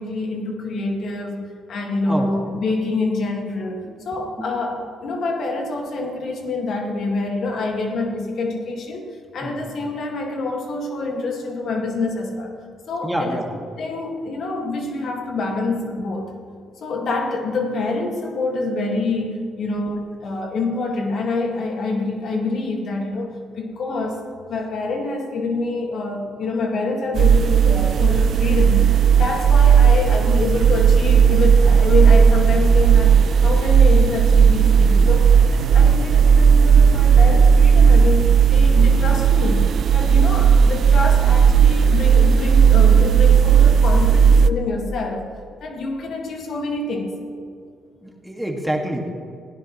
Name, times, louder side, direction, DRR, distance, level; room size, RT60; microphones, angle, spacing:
voice 1, 0.0-12.5 12.9-13.4 13.8-16.3 16.8-24.2 24.5-28.9 29.2-45.3 45.6-47.2, left 3 dB, 65° left, 1 dB, 2.0 m, -26 dB
voice 2, 13.0-13.5 35.6-35.8 48.0-49.1, right 1 dB, 5° right, 1 dB, 2.1 m, -27 dB
sound 1, 27.2-44.5, right 7 dB, 60° right, 0.4 m, -14 dB
17.0 x 16.5 x 3.2 m, 2.4 s
cardioid pair, 90°, 0 cm